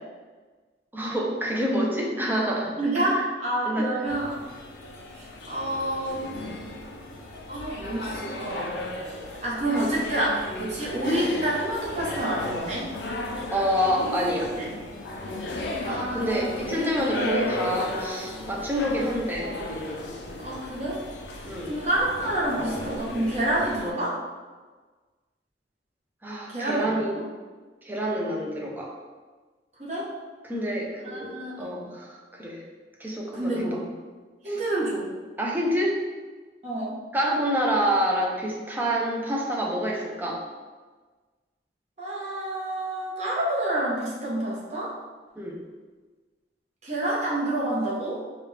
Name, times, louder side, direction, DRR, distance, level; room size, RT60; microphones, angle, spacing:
voice 1, 0.9-2.7 3.1-3.3 3.6-3.9 13.5-14.6 15.9-19.5 21.4-21.7 26.2-27.2 27.8-28.9 30.4-32.6 33.0-33.7 34.5-34.6 35.4-36.0 37.1-40.4 45.4-45.6, equal, 10° right, -2 dB, 0.6 m, -27 dB
voice 2, 2.8-4.3 5.1-6.3 7.5-8.7 9.4-12.9 14.6-14.7 15.8-16.7 17.2-17.3 20.4-21.0 21.6-24.2 26.5-26.9 29.8-30.1 31.0-31.9 33.3-33.8 34.4-35.1 36.6-36.9 42.0-45.0 46.8-48.2, right 1 dB, 40° right, -6 dB, 1.1 m, -28 dB
sound 1, 4.1-23.9, left 2 dB, 80° left, 0.6 m, -34 dB
4.8 x 2.4 x 3.3 m, 1.3 s
head